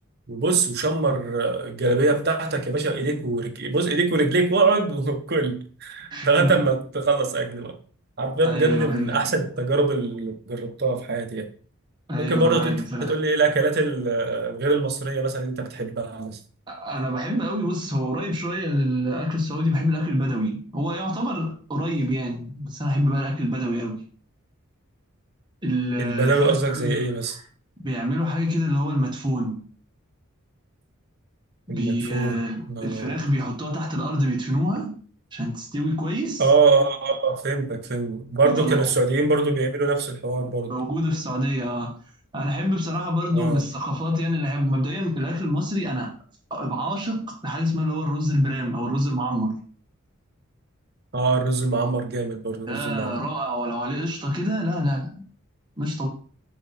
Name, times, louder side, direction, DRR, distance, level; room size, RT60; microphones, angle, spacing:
voice 1, 0.3-7.8 8.2-11.5 12.2-16.4 26.0-27.4 31.7-32.4 32.7-33.2 36.4-40.7 43.3-43.7 51.1-53.2, right 3 dB, 50° right, 0.9 m, -23 dB
voice 2, 6.1-6.5 8.4-9.2 12.1-13.1 16.7-24.0 25.6-27.0 27.2-27.3 27.8-29.6 31.7-35.0 35.3-36.4 38.4-38.9 40.7-42.0 42.3-46.1 46.5-49.5 52.7-55.2 55.8-56.1, equal, 20° right, 1.3 m, -26 dB
6.1 x 3.9 x 4.1 m
head